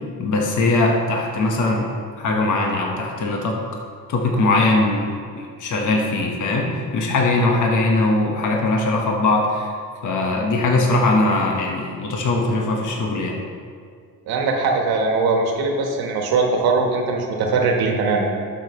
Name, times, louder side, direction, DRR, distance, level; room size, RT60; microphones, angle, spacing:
voice 1, 0.2-1.9 2.2-3.6 4.1-9.7 10.0-13.4, left 2 dB, 55° left, 0 dB, 1.3 m, -20 dB
voice 2, 14.3-18.3, right 3 dB, 80° right, 2 dB, 1.4 m, -20 dB
12.0 x 6.5 x 3.1 m, 2.1 s
cardioid pair, 115°, 36 cm